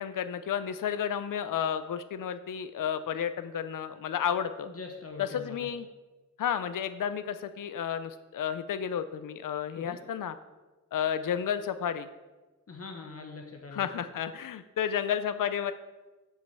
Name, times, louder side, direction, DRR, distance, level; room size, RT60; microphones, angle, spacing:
voice 1, 0.0-4.7 5.2-5.9 6.4-10.3 10.9-12.1 13.7-15.7, left 8 dB, 85° left, 11 dB, 0.5 m, -32 dB
voice 2, 4.6-5.7 9.8-10.0 12.7-13.9, left 4 dB, 50° left, 2 dB, 0.9 m, -43 dB
7.4 x 5.3 x 7.2 m, 1.2 s
wide cardioid pair, 130°, 31 cm